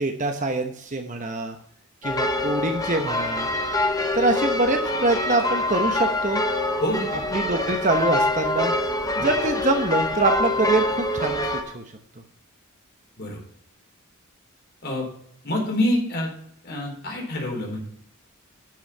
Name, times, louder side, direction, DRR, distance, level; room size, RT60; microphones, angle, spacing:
voice 1, 0.0-1.6 2.0-3.5 4.1-6.4 7.3-8.7 9.2-11.4 11.7-11.8, right 2 dB, 35° right, 5 dB, 1.0 m, -24 dB
sound 1, 2.0-11.6, left 2 dB, 15° left, 1.1 m, -25 dB
voice 2, 6.8-7.2 13.2-13.4 14.8-15.1 15.4-16.3 16.6-17.8, left 1 dB, 45° left, -1 dB, 4.1 m, -26 dB
12.0 x 6.4 x 5.5 m, 0.67 s
head